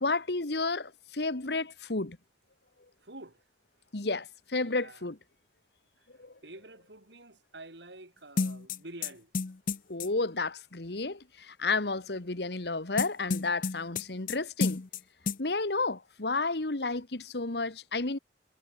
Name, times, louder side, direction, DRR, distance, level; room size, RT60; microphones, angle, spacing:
voice 1, 0.0-2.2 3.9-5.2 6.2-6.3 9.9-14.8 15.4-18.2, left 3 dB, 70° left, 1.6 m, -31 dB
voice 2, 3.0-3.4 4.6-5.0 6.4-9.3, right 2 dB, 85° right, 6.9 m, -48 dB
sound 1, 8.4-10.1 13.0-14.4 14.6-15.0 15.3-15.4, left 4 dB, 50° left, 0.6 m, -30 dB
head